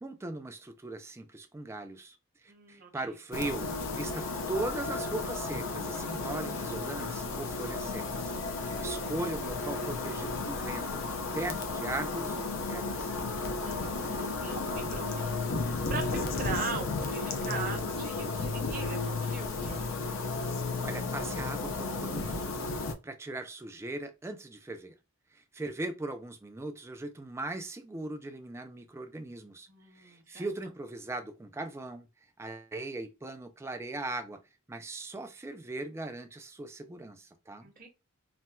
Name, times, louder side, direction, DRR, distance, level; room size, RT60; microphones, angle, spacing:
voice 1, 0.0-2.2 2.4-3.7 3.9-8.3 8.6-11.0 11.3-13.2 20.8-22.5 23.0-24.9 25.3-29.7 30.0-32.1 32.4-34.4 34.7-37.7, right 2 dB, 15° right, 0.4 m, -39 dB
voice 2, 2.5-3.2 8.9-9.3 13.6-19.9 29.7-30.5 37.6-37.9, right 5 dB, 40° right, 0.8 m, -41 dB
sound 1, 3.3-22.9, left 3 dB, 65° left, 0.5 m, -33 dB
4.1 x 2.1 x 2.2 m
head